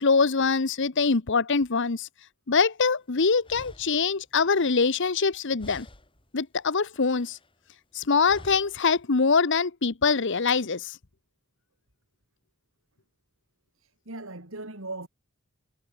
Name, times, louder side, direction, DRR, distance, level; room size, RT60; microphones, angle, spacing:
voice 1, 0.0-2.1 2.5-5.9 6.3-7.4 7.9-11.0, left 4 dB, 60° left, 1.0 m, -24 dB
sound 1, 2.9-3.0 3.4-5.3 5.6-6.3 6.6-7.5 8.2-8.9, left 1 dB, 25° left, 4.6 m, -49 dB
voice 2, 13.7-15.1, right 2 dB, 65° right, 3.8 m, -39 dB
head